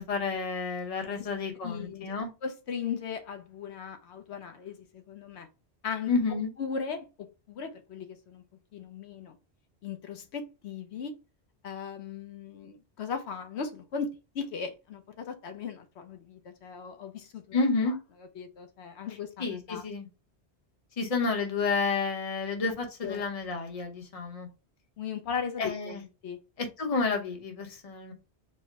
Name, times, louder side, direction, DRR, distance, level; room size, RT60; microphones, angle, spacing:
voice 1, 0.0-2.3 6.1-6.5 17.5-18.0 19.4-20.1 21.0-24.5 25.6-26.0 26.6-28.1, left 4 dB, 35° left, 0.9 m, -30 dB
voice 2, 1.6-2.1 2.4-5.5 5.8-6.1 6.6-8.4 8.7-9.4 9.8-11.1 11.6-14.1 14.3-17.6 18.4-19.8 23.0-23.2 25.0-26.4, left 6 dB, 80° left, 1.0 m, -37 dB
4.3 x 2.1 x 4.5 m
omnidirectional pair, 1.1 m